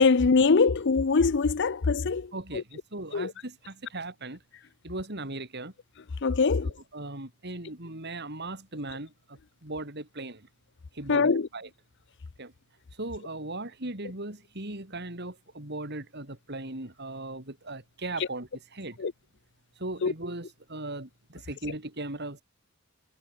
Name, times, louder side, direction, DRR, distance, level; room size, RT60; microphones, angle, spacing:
voice 1, 0.0-2.3 3.1-3.3 6.2-6.7 11.1-11.5 19.0-19.1 20.0-20.1, left 4 dB, 55° left, 0.6 m, -22 dB
voice 2, 2.3-4.4 4.8-5.7 6.6-10.5 10.9-11.7 12.4-12.5 13.0-19.0 19.8-22.4, right 2 dB, 50° right, 3.8 m, -38 dB
head